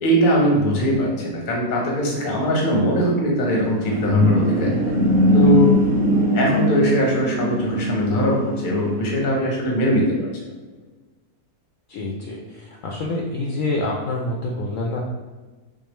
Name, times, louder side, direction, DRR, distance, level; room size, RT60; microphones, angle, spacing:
voice 1, 0.0-4.8 5.2-5.8 6.3-10.3, equal, 40° left, -1 dB, 0.8 m, -21 dB
sound 1, 3.4-9.0, equal, 85° right, 1.2 m, -20 dB
voice 2, 11.9-15.0, left 2 dB, 70° left, -1 dB, 0.8 m, -27 dB
4.7 x 2.4 x 3.0 m, 1.2 s
omnidirectional pair, 1.6 m